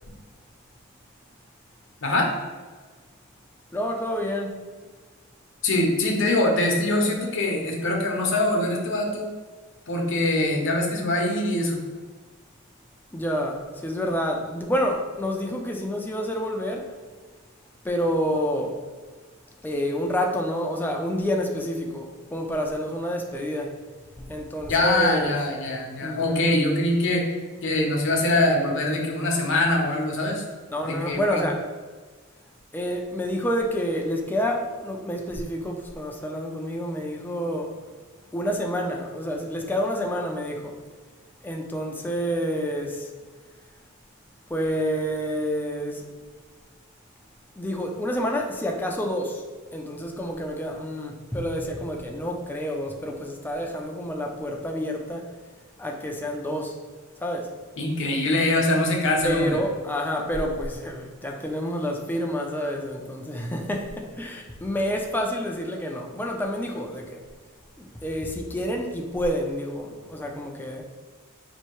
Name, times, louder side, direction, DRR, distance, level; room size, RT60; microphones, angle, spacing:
voice 1, 2.0-2.3 5.6-9.3 9.9-11.8 24.6-27.3 27.6-30.4 30.8-31.4 57.8-59.6, left 1 dB, 60° left, 0 dB, 0.8 m, -23 dB
voice 2, 3.7-4.6 13.1-16.9 17.8-18.8 19.6-23.8 24.2-25.4 26.0-26.5 30.7-31.6 32.7-37.8 38.3-40.8 41.4-43.1 44.5-46.1 47.6-49.4 49.7-55.3 55.8-56.8 57.2-57.5 59.2-67.2 67.8-70.8, equal, 10° left, 1 dB, 0.4 m, -28 dB
4.3 x 2.7 x 3.0 m, 1.4 s
head